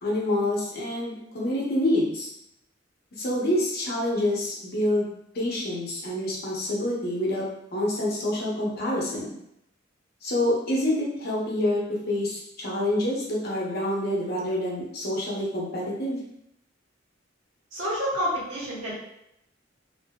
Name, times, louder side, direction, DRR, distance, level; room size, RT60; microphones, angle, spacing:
voice 1, 0.0-2.3 3.2-5.1 5.3-7.4 7.7-9.3 10.2-11.8 12.1-16.2, left 1 dB, 55° left, -4 dB, 0.8 m, -27 dB
voice 2, 17.7-18.9, equal, 85° right, -7 dB, 1.2 m, -28 dB
2.7 x 2.5 x 2.2 m, 0.79 s
head